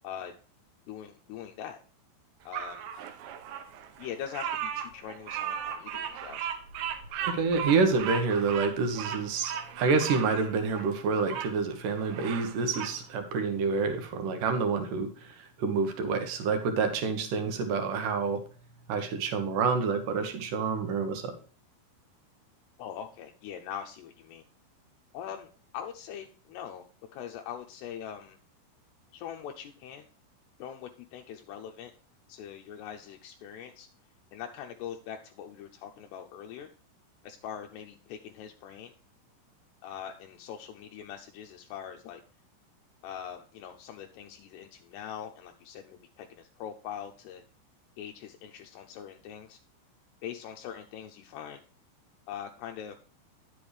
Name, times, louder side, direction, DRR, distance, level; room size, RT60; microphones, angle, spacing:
voice 1, 0.9-1.8 2.5-2.9 4.0-6.5 22.8-24.4 25.1-25.5 25.7-26.8 27.1-28.4 29.1-30.1 30.6-31.9 32.3-33.9 34.3-36.7 37.2-38.9 39.8-42.2 43.0-47.4 48.0-49.6 50.2-51.6 52.3-53.0, left 9 dB, 80° left, 3 dB, 2.5 m, -42 dB
Bird vocalization bird call bird song, 2.5-11.5 12.0-13.0, right 8 dB, 85° right, 3.7 m, -37 dB
voice 2, 7.3-18.4 18.9-21.3, right 4 dB, 70° right, 7 dB, 2.1 m, -28 dB
10.5 x 7.8 x 3.2 m, 0.39 s
omnidirectional pair, 5.5 m